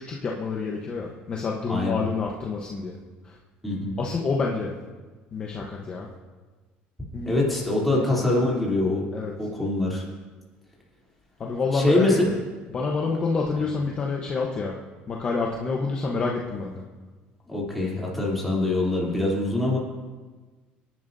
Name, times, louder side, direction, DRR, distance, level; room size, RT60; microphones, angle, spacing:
voice 1, 0.0-3.0 3.2-3.4 4.0-4.7 5.3-6.1 7.1-7.4 7.8-8.3 9.1-9.3 11.4-12.3 12.7-14.7 15.1-16.8, left 4 dB, 25° left, -1 dB, 1.0 m, -28 dB
voice 2, 1.7-2.0 3.6-3.9 7.2-9.0 9.4-10.1 11.7-12.2 17.5-19.8, left 2 dB, ahead, -5 dB, 3.2 m, -24 dB
25.5 x 11.0 x 2.7 m, 1.3 s
cardioid pair, 165°, 4 cm